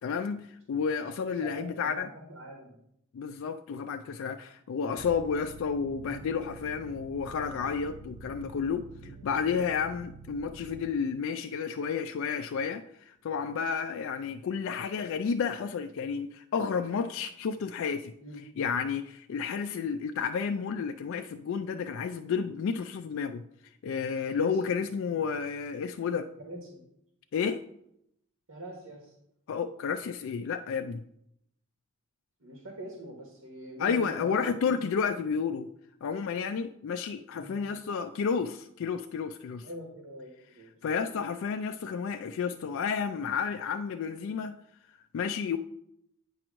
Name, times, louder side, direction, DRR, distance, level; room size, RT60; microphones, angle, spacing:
voice 1, 0.0-2.1 3.1-8.9 9.2-18.1 18.6-23.4 23.8-26.3 27.3-27.6 29.5-31.0 33.8-35.7 36.0-39.7 40.8-44.6 45.1-45.6, left 6 dB, 65° left, 0.3 m, -31 dB
voice 2, 1.4-2.8 9.0-9.1 9.4-9.6 18.2-18.4 24.3-24.6 26.4-26.8 28.5-29.1 32.4-34.8 37.3-37.6 39.6-40.3 40.6-40.7, right 1 dB, 80° right, 1.4 m, -43 dB
sound 1, 5.0-10.8, right 4 dB, 35° right, 0.5 m, -48 dB
8.8 x 3.0 x 6.1 m
head